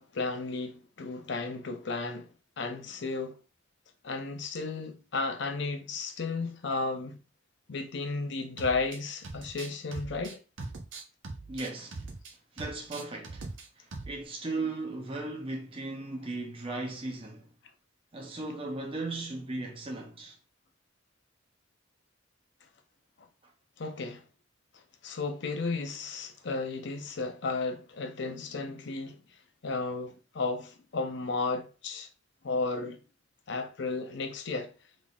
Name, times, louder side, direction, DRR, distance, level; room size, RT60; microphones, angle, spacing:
voice 1, 0.0-2.3 2.6-3.4 4.0-7.2 7.7-10.4 23.8-24.2 25.0-29.2 29.6-32.1 32.4-33.0 33.5-34.7, left 3 dB, 60° left, 0.6 m, -33 dB
sound 1, 8.6-9.0 9.2-12.3 12.6-13.7 13.9-14.2, right 3 dB, 70° right, 0.7 m, -41 dB
voice 2, 11.5-12.1 12.5-13.5 13.8-17.5 18.1-20.4, right 2 dB, 30° right, 0.6 m, -37 dB
3.7 x 3.6 x 2.4 m
head